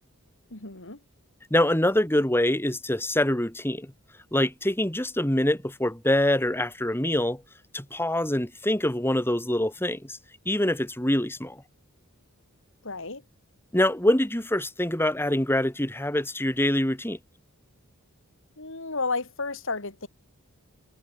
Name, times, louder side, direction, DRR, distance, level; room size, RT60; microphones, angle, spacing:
voice 1, 0.5-1.0 12.8-13.2 18.6-20.1, left 3 dB, 65° left, 4.1 m, -32 dB
voice 2, 1.5-3.9 4.3-7.4 7.7-10.2 10.5-11.6 13.7-17.2, left 1 dB, 10° left, 3.7 m, -25 dB
head